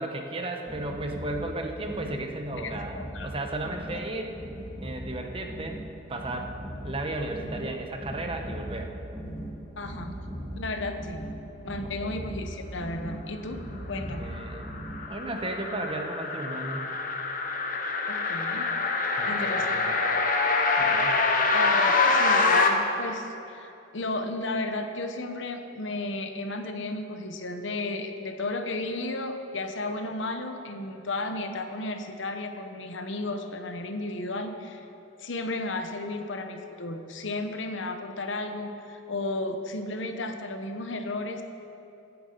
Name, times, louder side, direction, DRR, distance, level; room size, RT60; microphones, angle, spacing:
voice 1, 0.0-3.0 3.2-4.4 4.8-5.8 6.1-6.5 6.8-8.9 12.0-12.1 14.1-14.7 15.1-16.8 19.2-20.0 20.8-21.2, right 2 dB, 25° right, 3 dB, 1.0 m, -34 dB
sound 1, 0.7-15.3, equal, 10° left, 3.3 m, -39 dB
voice 2, 2.6-3.3 9.8-10.1 10.5-11.2 11.6-14.3 18.1-18.7 19.3-19.8 21.5-34.9 35.2-41.4, left 2 dB, 65° left, 6 dB, 1.0 m, -33 dB
sound 2, 14.3-22.7, left 3 dB, 40° left, 1.0 m, -25 dB
15.0 x 9.3 x 5.3 m, 2.9 s
head